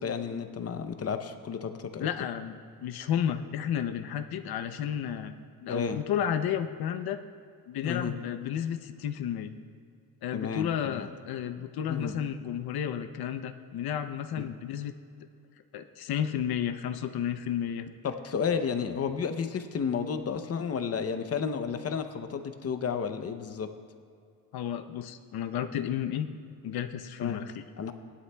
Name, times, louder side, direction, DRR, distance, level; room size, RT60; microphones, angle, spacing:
voice 1, 0.0-2.1 5.7-6.0 7.8-8.1 10.3-11.1 11.9-12.1 14.4-14.5 18.0-23.7 27.2-27.4 27.8-27.9, left 6 dB, 40° left, 8 dB, 0.7 m, -32 dB
voice 2, 2.0-5.3 5.6-7.2 7.7-9.6 10.2-14.9 15.7-17.9 24.5-26.3 26.6-27.7, left 9 dB, 80° left, 8 dB, 0.7 m, -32 dB
19.0 x 11.0 x 2.3 m, 2.3 s
cardioid pair, 135°, 36 cm